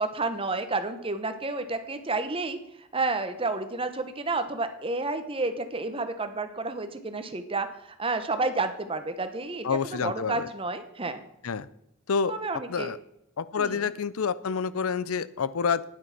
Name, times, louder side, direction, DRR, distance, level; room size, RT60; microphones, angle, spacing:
voice 1, 0.0-2.6 2.9-11.2 12.3-12.9 13.6-13.9, right 3 dB, 25° right, 9 dB, 1.0 m, -30 dB
voice 2, 9.6-10.5 11.4-11.7 12.1-12.3 12.7-13.0 13.4-15.8, left 5 dB, 85° left, 18 dB, 0.6 m, -28 dB
9.5 x 9.4 x 5.9 m, 0.82 s
head